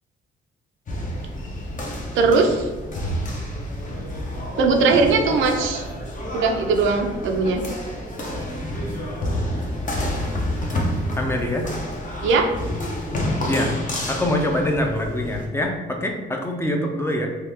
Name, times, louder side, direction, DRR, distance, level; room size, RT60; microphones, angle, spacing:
sound 1, 0.9-15.5, left 1 dB, 40° left, 0.8 m, -29 dB
voice 1, 2.1-2.7 4.6-5.8 6.3-7.6 12.2-12.5, right 4 dB, 75° right, 3 dB, 0.5 m, -19 dB
voice 2, 11.2-11.7 13.5-13.7 14.1-17.3, left 1 dB, 10° left, 2 dB, 0.5 m, -24 dB
3.0 x 2.2 x 3.5 m, 1.3 s
cardioid pair, 90°, 20 cm